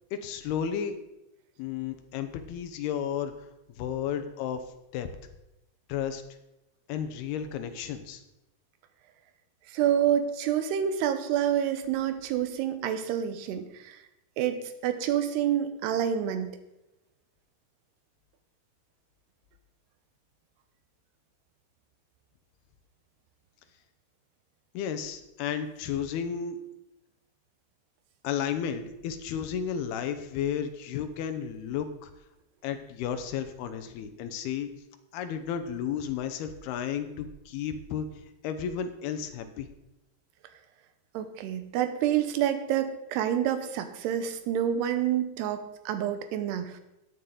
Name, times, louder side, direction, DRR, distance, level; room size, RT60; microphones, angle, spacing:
voice 1, 0.1-0.9 1.6-3.3 3.8-4.6 4.9-5.1 5.9-6.2 6.9-8.2 24.7-26.6 28.2-32.1 32.6-34.7 35.1-38.1 38.4-39.7, left 8 dB, 80° left, 8 dB, 2.9 m, -33 dB
voice 2, 9.7-14.0 14.4-16.5 41.1-46.7, right 10 dB, 85° right, 9 dB, 3.0 m, -28 dB
14.0 x 9.5 x 3.9 m, 0.91 s
omnidirectional pair, 4.6 m